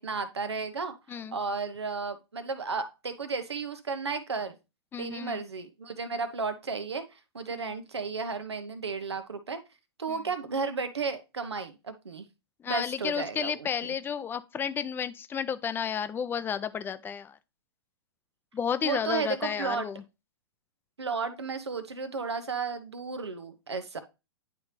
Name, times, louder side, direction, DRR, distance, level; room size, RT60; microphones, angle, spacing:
voice 1, 0.0-4.6 5.0-9.6 10.0-12.3 12.7-13.7 18.8-19.9 21.0-24.0, right 4 dB, 90° right, 1.2 m, -33 dB
voice 2, 4.9-5.4 7.5-7.6 10.1-10.2 12.6-17.4 18.5-20.0, left 7 dB, 15° left, 0.5 m, -32 dB
10.5 x 3.5 x 3.2 m
hypercardioid pair, 120°, 14 cm